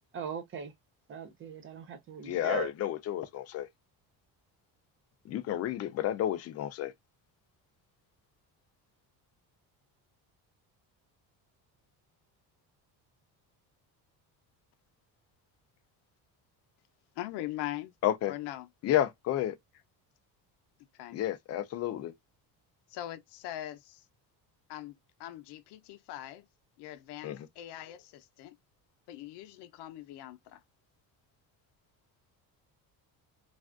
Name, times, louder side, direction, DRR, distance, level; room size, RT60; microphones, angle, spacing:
voice 1, 0.1-0.7 1.1-2.7, right 7 dB, 30° right, 0.5 m, -39 dB
voice 2, 2.2-3.7 5.3-6.9 18.0-18.3 18.8-19.6 21.1-22.1 27.2-27.5, left 12 dB, 40° left, 0.4 m, -31 dB
voice 3, 17.2-17.9 18.2-18.7 21.0-21.2 22.9-24.0 24.7-26.5 26.8-28.5 29.1-30.6, left 14 dB, 80° left, 0.7 m, -41 dB
3.4 x 2.4 x 2.4 m
cardioid pair, 175°, 40 cm